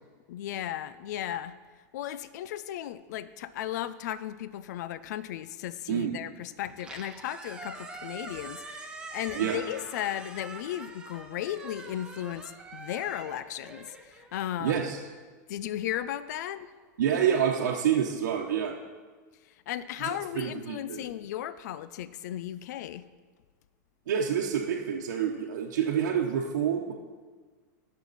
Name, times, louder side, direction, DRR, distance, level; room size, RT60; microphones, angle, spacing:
voice 1, 0.3-1.5 1.9-14.8 15.5-16.7 19.7-23.0, left 12 dB, 70° left, 15 dB, 0.5 m, -35 dB
Squeak, 6.7-14.9, right 3 dB, 10° right, 1.0 m, -44 dB
voice 2, 14.6-15.0 17.0-18.7 20.0-21.0 24.1-26.9, right 8 dB, 85° right, -2 dB, 1.0 m, -28 dB
18.0 x 6.3 x 4.1 m, 1.5 s
supercardioid pair, 135°, 10 cm